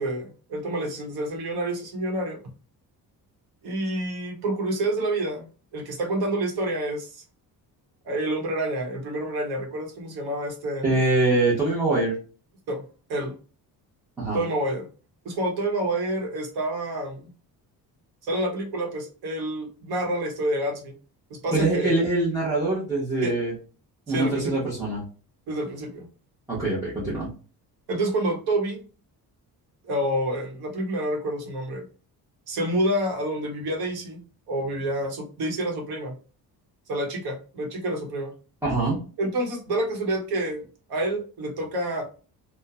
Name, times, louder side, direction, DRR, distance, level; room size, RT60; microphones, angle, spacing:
voice 1, 0.0-2.4 3.6-5.5 5.7-7.2 8.0-10.9 12.7-12.8 13.1-13.3 14.3-14.9 15.2-17.2 18.2-20.9 21.3-22.0 23.2-23.3 24.1-24.7 25.5-26.1 27.9-28.8 29.8-31.8 32.5-36.1 36.9-38.3 39.2-42.1, right 1 dB, 70° right, 2 dB, 0.9 m, -28 dB
voice 2, 10.8-12.2 14.2-14.4 21.5-23.5 24.1-25.0 26.5-27.3 38.6-39.0, right 2 dB, 10° right, -9 dB, 0.6 m, -23 dB
2.8 x 2.1 x 2.3 m, 0.36 s
cardioid pair, 180°, 39 cm